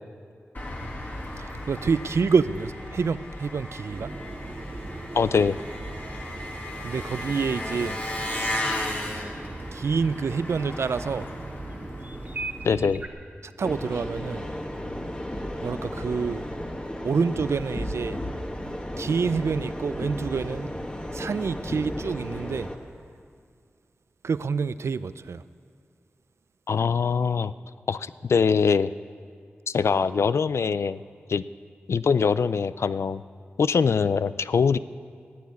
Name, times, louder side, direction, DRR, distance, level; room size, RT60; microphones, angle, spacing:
Engine, 0.5-12.8, left 1 dB, 45° left, 2.3 m, -35 dB
voice 1, 1.4-4.1 6.8-8.0 9.7-11.3 13.4-14.5 15.6-16.4 17.0-18.2 19.0-20.7 21.1-22.7 24.2-25.4, right 5 dB, 75° right, 15 dB, 0.4 m, -27 dB
sound 1, 3.9-13.1, right 2 dB, 40° right, 1.2 m, -39 dB
voice 2, 5.1-5.6 12.6-13.0 26.7-27.5 27.9-28.9 29.7-31.0 31.3-31.5 31.9-33.2 33.6-34.8, left 5 dB, 75° left, 15 dB, 0.4 m, -23 dB
sound 2, 13.6-22.8, left 1 dB, 20° left, 1.6 m, -34 dB
14.5 x 8.6 x 9.5 m, 2.2 s
cardioid pair, 55°, 5 cm